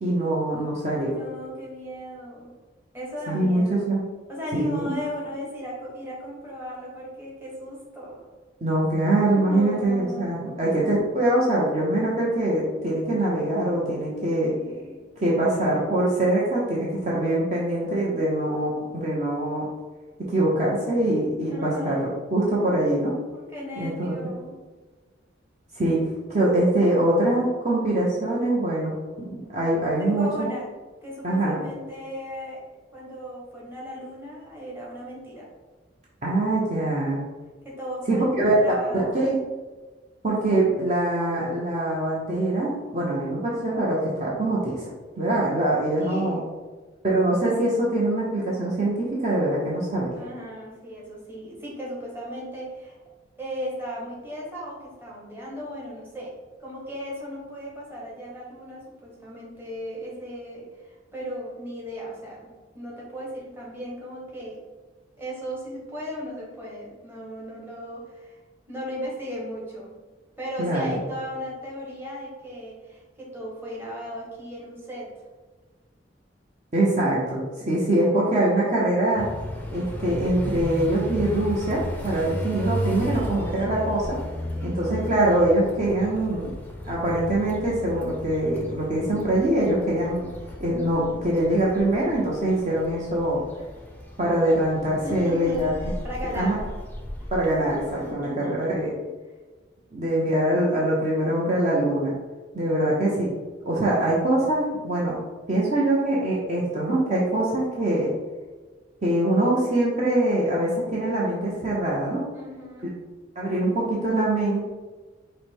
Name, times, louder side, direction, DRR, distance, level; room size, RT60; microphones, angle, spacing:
voice 1, 0.0-1.1 3.3-4.0 4.5-5.0 8.6-14.5 15.2-19.7 20.3-22.0 22.3-23.1 23.8-24.1 25.7-26.0 26.3-30.5 31.2-31.6 36.2-37.3 38.1-38.5 39.1-39.4 40.2-46.4 47.0-50.1 70.6-70.9 76.7-79.2 79.7-84.2 84.6-86.5 86.8-90.2 90.6-93.4 94.2-95.7 96.3-96.5 97.3-98.9 99.9-102.1 102.5-103.3 103.6-105.1 105.5-108.1 109.0-112.2 112.8-112.9 113.4-114.6, right 1 dB, 40° right, -6 dB, 0.8 m, -23 dB
voice 2, 0.9-2.5 2.9-3.9 4.3-8.2 9.3-10.7 14.4-15.0 21.5-22.2 23.3-24.5 30.0-30.6 31.0-32.6 32.9-35.4 37.6-39.3 45.9-46.4 50.2-53.0 53.4-62.4 62.7-64.6 65.2-68.3 68.7-69.9 70.4-75.1 82.2-82.6 84.5-84.9 95.0-96.6 98.0-99.1 112.3-112.9, equal, 10° right, -5 dB, 1.2 m, -36 dB
sound 1, 79.2-98.1, left 1 dB, 10° left, 0.5 m, -35 dB
5.0 x 2.2 x 4.4 m, 1.3 s
head